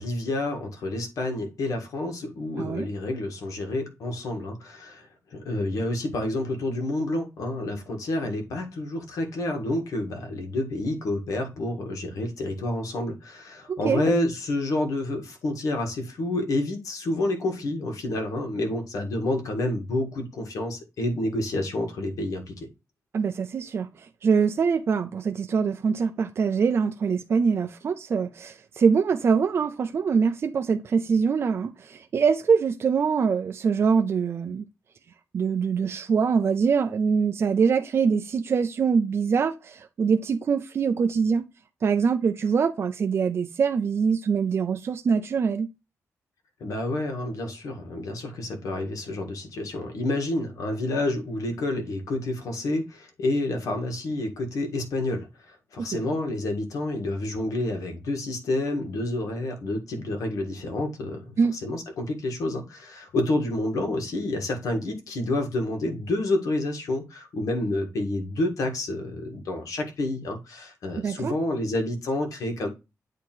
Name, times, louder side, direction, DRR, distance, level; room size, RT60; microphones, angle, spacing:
voice 1, 0.0-22.7 46.6-72.7, left 2 dB, 80° left, 1.7 m, -29 dB
voice 2, 13.7-14.0 23.1-34.6 35.3-41.5 41.8-45.7 55.9-56.0 61.4-61.6 71.0-71.3, right 6 dB, 45° right, 0.5 m, -24 dB
8.5 x 2.9 x 4.5 m
wide cardioid pair, 145°, 6 cm